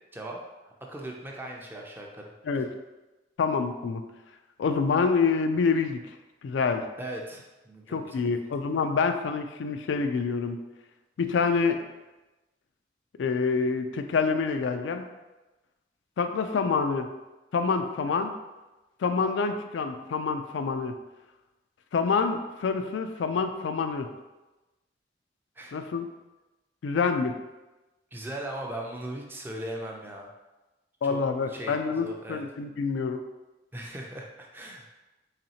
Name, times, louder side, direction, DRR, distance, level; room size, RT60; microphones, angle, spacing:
voice 1, 0.9-2.3 7.0-8.4 25.6-25.8 28.1-30.3 31.1-31.2 31.5-32.4 33.7-34.8, right 1 dB, 10° right, 0 dB, 0.4 m, -38 dB
voice 2, 3.4-4.0 4.6-6.0 6.4-6.8 7.9-10.6 11.2-11.8 13.2-15.1 16.2-17.1 17.5-18.3 19.0-21.0 21.9-24.1 25.7-26.1 26.8-27.4 31.0-33.2, left 5 dB, 90° left, 7 dB, 0.3 m, -27 dB
4.1 x 3.1 x 2.8 m, 1.1 s
head